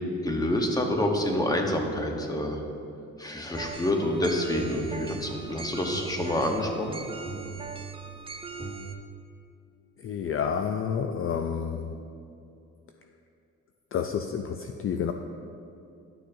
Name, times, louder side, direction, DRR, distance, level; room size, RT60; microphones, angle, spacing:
voice 1, 0.2-2.6 3.2-7.0, left 1 dB, 10° left, 2 dB, 1.0 m, -27 dB
sound 1, 3.5-8.9, right 4 dB, 20° right, 0.6 m, -39 dB
voice 2, 10.0-12.0 13.9-15.1, left 7 dB, 45° left, 6 dB, 0.4 m, -29 dB
11.5 x 6.4 x 2.7 m, 2.6 s
cardioid pair, 90°, 30 cm